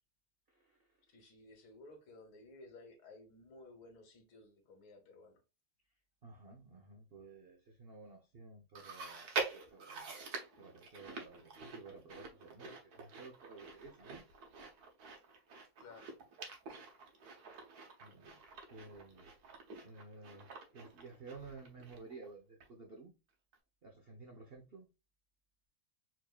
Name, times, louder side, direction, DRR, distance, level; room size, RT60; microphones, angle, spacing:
voice 1, 1.1-5.4 15.8-16.1, left 2 dB, 70° left, 2.2 m, -56 dB
voice 2, 6.2-10.1 10.6-14.3 18.0-18.4 18.7-19.3 19.8-23.2 23.8-24.9, right 3 dB, 75° right, 0.5 m, -54 dB
Chewing mastication, 8.8-22.3 22.6-22.7 23.5-23.6, right 4 dB, 55° right, 1.3 m, -46 dB
4.6 x 3.7 x 2.3 m
omnidirectional pair, 2.3 m